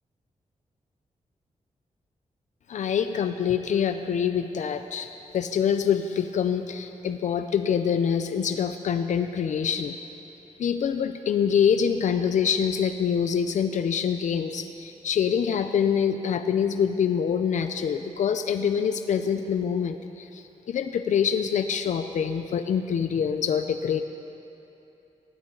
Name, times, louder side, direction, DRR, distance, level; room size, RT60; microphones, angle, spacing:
voice 1, 2.7-9.9 10.6-24.0, left 7 dB, 80° left, 8 dB, 0.6 m, -25 dB
19.5 x 19.0 x 3.9 m, 2.9 s
wide cardioid pair, 175°, 12 cm